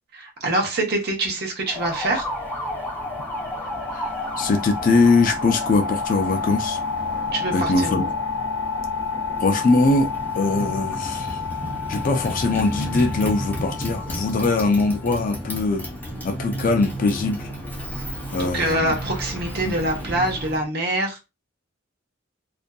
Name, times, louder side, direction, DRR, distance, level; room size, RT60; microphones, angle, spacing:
voice 1, 0.1-2.3 7.3-8.1 18.4-21.2, right 1 dB, 55° right, 1 dB, 0.8 m, -25 dB
Motorcycle, 1.7-20.6, equal, 10° left, 0.7 m, -33 dB
sound 1, 2.1-15.5, left 5 dB, 30° right, 1.0 m, -31 dB
voice 2, 4.4-6.8 7.5-8.0 9.4-11.4 11.9-15.8 16.2-17.5 18.3-18.9 19.6-19.8, left 3 dB, 45° left, 6 dB, 0.4 m, -21 dB
2.6 x 2.4 x 2.2 m, 0.25 s
head